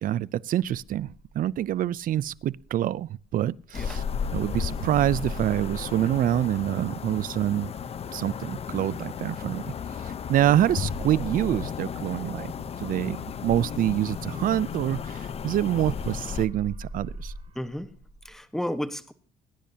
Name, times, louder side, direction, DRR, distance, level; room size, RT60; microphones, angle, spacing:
voice 1, 0.0-4.0 4.3-7.7 8.1-9.7 10.0-12.5 12.8-17.3, right 12 dB, 55° right, 0.5 m, -26 dB
sound 1, 0.6-4.1 4.4-9.9 10.2-15.7 16.0-18.3, right 1 dB, 35° right, 4.6 m, -44 dB
sound 2, 3.7-16.5, left 7 dB, 35° left, 0.8 m, -34 dB
voice 2, 17.5-17.9 18.2-19.1, left 1 dB, ahead, 1.2 m, -32 dB
22.5 x 10.0 x 2.8 m
cardioid pair, 110°, 17 cm